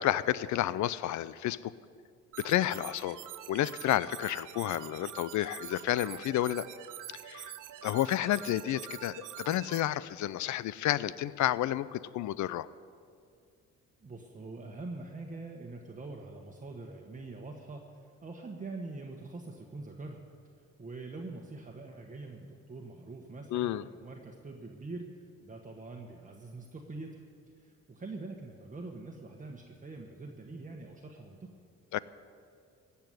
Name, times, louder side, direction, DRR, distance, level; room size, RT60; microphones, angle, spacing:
voice 1, 0.0-1.7 2.4-3.2 3.5-6.6 7.3-7.5 7.8-12.7 23.5-23.8 31.9-32.0, left 13 dB, 70° left, 18 dB, 0.5 m, -30 dB
sound 1, 2.3-9.8, right 12 dB, 85° right, 0.8 m, -45 dB
voice 2, 14.0-20.2 20.8-25.1 25.4-27.2 27.6-31.5, right 3 dB, 25° right, 1 dB, 1.3 m, -44 dB
16.5 x 7.0 x 9.6 m, 2.3 s
cardioid pair, 90°, 30 cm